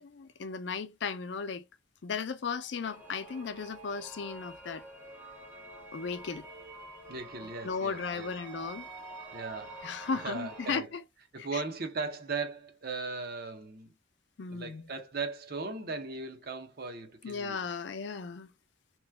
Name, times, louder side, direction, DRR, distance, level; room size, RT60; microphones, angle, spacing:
voice 1, 0.0-1.6 2.0-4.8 5.9-6.5 7.6-8.9 9.8-11.0 11.4-11.6 14.4-14.9 17.2-18.5, left 5 dB, 65° left, 0.5 m, -36 dB
sound 1, 2.8-10.8, right 2 dB, 10° right, 0.7 m, -47 dB
voice 2, 7.1-8.3 9.3-9.8 10.1-10.9 11.3-13.9 14.5-17.6, right 4 dB, 50° right, 0.7 m, -38 dB
3.0 x 2.2 x 3.4 m
head